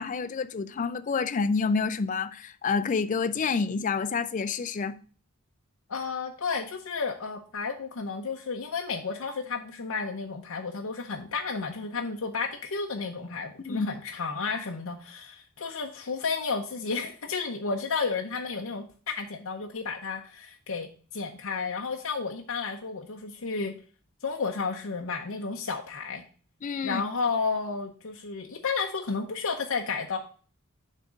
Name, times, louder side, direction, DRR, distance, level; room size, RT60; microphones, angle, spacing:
voice 1, 0.0-5.0 13.6-13.9 26.6-27.0, left 5 dB, 35° left, 0.4 m, -28 dB
voice 2, 5.9-23.7 24.2-26.2 26.8-30.2, left 4 dB, 65° left, 0.7 m, -32 dB
6.7 x 3.6 x 6.2 m
head